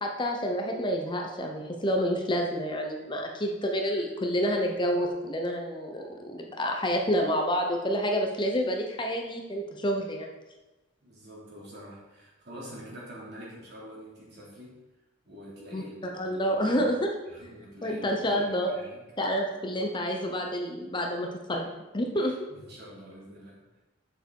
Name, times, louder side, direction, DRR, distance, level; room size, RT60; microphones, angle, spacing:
voice 1, 0.0-10.3 15.7-15.8 16.1-17.1 17.8-18.7 19.2-22.4, equal, 25° left, 2 dB, 0.8 m, -28 dB
voice 2, 11.0-14.8 15.2-17.0 17.3-19.0 22.2-23.8, equal, 55° right, -5 dB, 3.2 m, -46 dB
7.5 x 6.8 x 4.7 m, 1.0 s
head